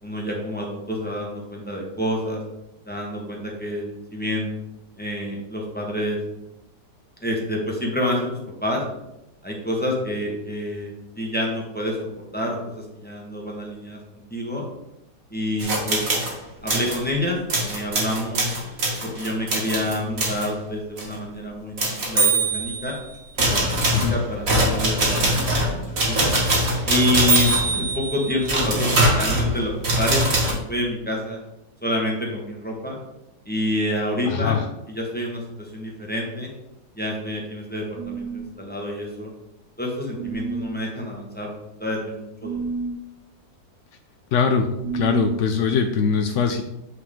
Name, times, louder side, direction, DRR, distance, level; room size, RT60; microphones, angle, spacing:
voice 1, 0.0-2.4 2.9-4.5 5.0-6.2 7.2-8.8 9.4-14.0 14.3-14.6 15.3-16.0 16.6-18.4 19.0-22.9 23.5-23.6 24.1-26.3 26.9-31.4 31.8-33.0 33.4-34.6 34.9-36.5 37.0-39.3 39.8-41.5 41.8-42.7, left 1 dB, 5° left, -2 dB, 1.3 m, -28 dB
sound 1, 15.6-16.3 16.7-17.0 17.5-20.5 21.0-21.2 21.8-22.9 23.4-30.5, right 1 dB, 50° right, 2.0 m, -22 dB
voice 2, 34.3-34.6 44.3-44.7 44.9-46.6, left 6 dB, 75° left, 6 dB, 0.6 m, -21 dB
sound 2, 37.9-38.6 40.1-40.8 42.4-43.0 44.8-45.5, right 5 dB, 75° right, 1.1 m, -30 dB
8.2 x 4.6 x 3.7 m, 0.88 s
omnidirectional pair, 1.8 m